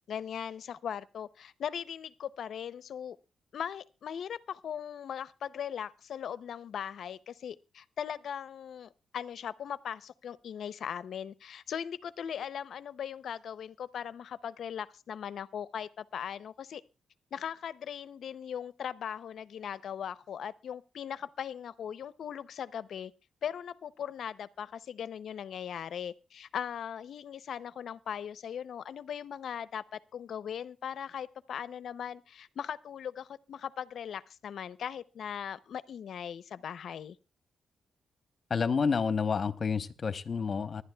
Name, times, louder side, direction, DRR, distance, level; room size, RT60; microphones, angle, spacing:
voice 1, 0.1-3.2 3.5-16.8 17.3-23.1 23.4-37.2, left 8 dB, 70° left, 0.5 m, -39 dB
voice 2, 38.5-40.8, left 5 dB, 40° left, 0.9 m, -29 dB
25.0 x 11.5 x 2.3 m
cardioid pair, 115°, 0 cm